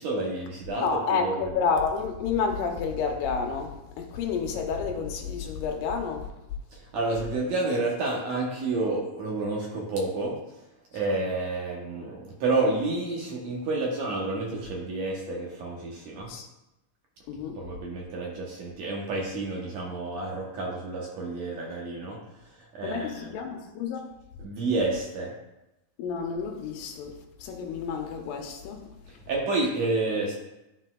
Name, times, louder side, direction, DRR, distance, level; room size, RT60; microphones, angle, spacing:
voice 1, 0.0-1.5 6.7-10.4 10.9-16.3 17.6-22.2 22.7-23.4 24.4-25.3 29.3-30.4, right 2 dB, 70° right, -2 dB, 1.9 m, -29 dB
voice 2, 0.8-6.3 16.3-16.5 17.3-17.6 22.8-24.0 26.0-28.9, left 5 dB, 80° left, 4 dB, 2.4 m, -30 dB
12.0 x 4.1 x 2.3 m, 0.94 s
omnidirectional pair, 3.8 m